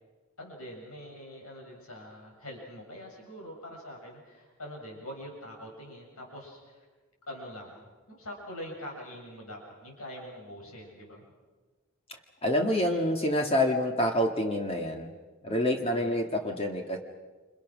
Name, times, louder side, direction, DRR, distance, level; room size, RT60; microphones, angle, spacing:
voice 1, 0.4-6.8 7.3-11.2 15.9-16.1, equal, 90° left, 0 dB, 7.4 m, -44 dB
voice 2, 12.4-15.2 15.4-17.0, left 1 dB, 25° left, 3 dB, 2.0 m, -27 dB
28.5 x 27.5 x 6.3 m, 1.3 s
head